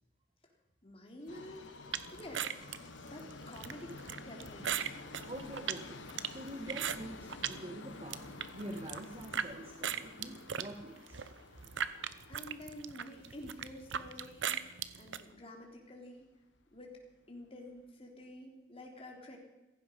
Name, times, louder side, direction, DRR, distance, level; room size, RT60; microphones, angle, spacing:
voice 1, 0.8-1.8 2.1-4.9 12.3-16.2 16.7-17.0 17.3-19.4, left 1 dB, 30° left, 0 dB, 3.4 m, -49 dB
sound 1, 1.2-13.7, left 3 dB, 45° left, 5.5 m, -68 dB
Subway metro underground, 1.3-15.4 15.7-15.8 16.6-16.7 17.0-17.1 17.7-17.8, left 3 dB, 80° left, 1.2 m, -51 dB
sound 2, 1.9-7.6 8.0-9.5 9.8-15.2, right 8 dB, 85° right, 0.8 m, -38 dB
voice 2, 5.3-8.2 8.5-11.2, right 1 dB, 30° right, 3 dB, 1.5 m, -46 dB
16.5 x 15.5 x 5.3 m, 1.0 s
head